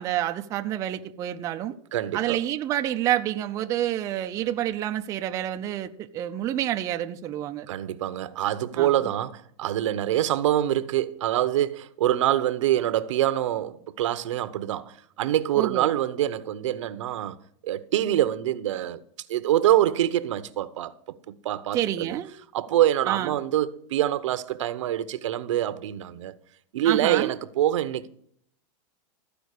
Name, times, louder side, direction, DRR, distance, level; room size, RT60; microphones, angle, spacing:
voice 1, 0.0-1.8 2.1-7.7 8.8-9.1 15.6-15.9 21.7-22.3 23.1-23.3 26.8-27.3, right 12 dB, 20° right, 0.5 m, -28 dB
voice 2, 1.9-2.4 7.7-17.4 17.6-19.0 19.3-22.1 22.5-26.4 26.7-28.1, right 12 dB, 80° right, 0.9 m, -25 dB
14.0 x 5.1 x 6.6 m
supercardioid pair, 165°, 16 cm